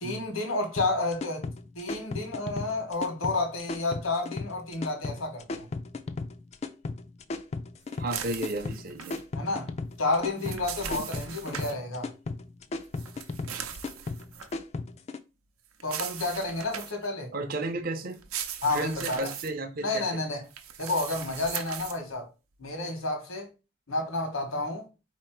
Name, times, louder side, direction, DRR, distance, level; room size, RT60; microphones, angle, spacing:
voice 1, 0.0-1.5 1.7-5.7 9.3-9.7 10.0-12.1 15.8-17.3 18.6-19.3 19.8-20.4 20.8-22.3 22.6-23.5 23.9-24.9, left 2 dB, 80° left, 1.3 m, -30 dB
sound 1, 0.8-15.2, left 3 dB, 30° left, 0.3 m, -36 dB
voice 2, 8.0-9.2 11.0-11.1 17.3-18.2 18.7-20.2, right 2 dB, 45° right, 0.6 m, -33 dB
sound 2, 8.1-9.2 10.2-11.7 12.9-14.5 15.8-17.1 18.1-19.5 20.5-22.0, right 8 dB, 90° right, 0.7 m, -39 dB
4.2 x 2.8 x 4.5 m
head